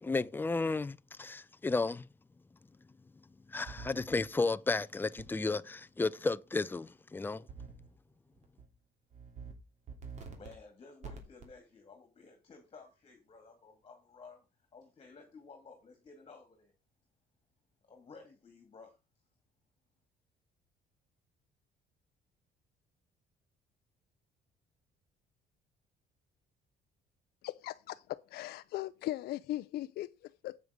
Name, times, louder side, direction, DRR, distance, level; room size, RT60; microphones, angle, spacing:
voice 1, 0.0-2.1 3.5-7.4, left 3 dB, 10° left, 0.5 m, -33 dB
sound 1, 3.7-4.2 5.2-5.3 7.5-7.9 8.4-8.7 9.1-9.5 9.9-10.5 11.0-11.5, right 5 dB, 45° right, 3.1 m, -46 dB
voice 2, 10.3-14.5 14.7-16.7 17.9-19.0, left 4 dB, 35° left, 2.2 m, -54 dB
voice 3, 27.4-30.6, left 15 dB, 70° left, 0.5 m, -39 dB
8.0 x 7.1 x 5.0 m
cardioid pair, 110°, 17 cm